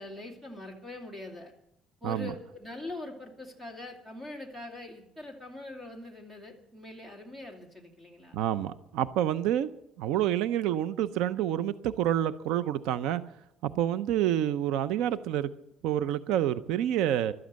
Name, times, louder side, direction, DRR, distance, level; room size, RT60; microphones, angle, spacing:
voice 1, 0.0-1.5 2.0-8.4, left 2 dB, 10° right, 3 dB, 2.7 m, -43 dB
voice 2, 8.3-9.7 10.0-13.2 13.6-15.5 15.8-17.3, right 11 dB, 90° right, 14 dB, 0.6 m, -28 dB
14.5 x 13.0 x 7.5 m, 0.80 s
cardioid pair, 160°, 0 cm